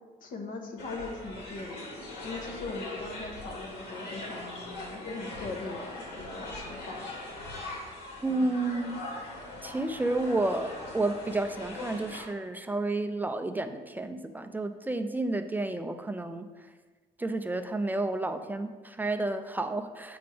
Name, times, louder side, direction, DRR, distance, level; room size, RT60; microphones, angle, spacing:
voice 1, 0.2-1.9 2.2-7.2 8.3-8.5, left 3 dB, 55° left, 3 dB, 1.1 m, -40 dB
sound 1, 0.8-12.3, left 2 dB, 85° left, 2.2 m, -40 dB
voice 2, 8.2-9.0 9.6-16.5 17.2-20.2, right 2 dB, 10° right, 8 dB, 0.3 m, -31 dB
7.8 x 5.1 x 3.4 m, 1.4 s
cardioid pair, 110°, 17 cm